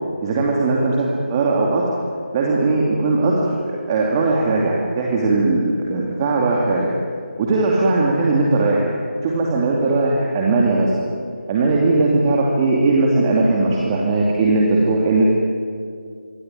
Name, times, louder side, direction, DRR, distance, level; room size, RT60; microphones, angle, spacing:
voice 1, 0.2-1.9 2.3-6.9 7.4-8.9 9.2-11.0 11.5-15.2, right 3 dB, 20° right, -2 dB, 2.6 m, -18 dB
27.0 x 23.5 x 9.2 m, 2.2 s
figure-of-eight pair, 160°, 6 cm